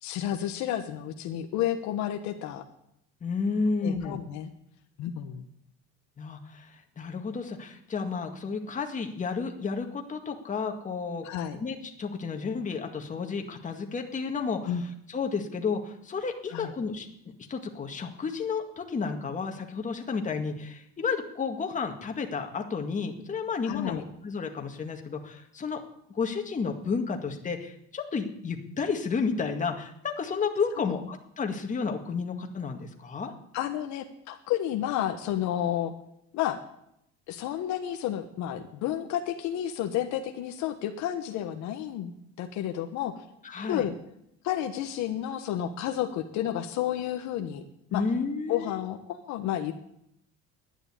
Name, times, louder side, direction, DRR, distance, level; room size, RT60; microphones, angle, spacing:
voice 1, 0.0-2.6 3.8-4.5 5.0-5.5 11.2-11.6 14.6-14.8 16.5-16.7 23.6-24.0 30.8-31.0 33.5-35.9 36.3-36.6 37.3-42.1 42.4-43.2 43.6-43.9 44.4-47.6 47.9-48.0 48.5-49.7, left 11 dB, 65° left, 6 dB, 1.3 m, -31 dB
voice 2, 3.2-4.2 6.2-11.3 11.5-17.1 17.5-25.8 26.1-33.3 43.4-43.9 47.9-48.8, left 5 dB, 25° left, 3 dB, 1.9 m, -32 dB
11.5 x 9.9 x 8.4 m, 0.74 s
cardioid pair, 130°, 31 cm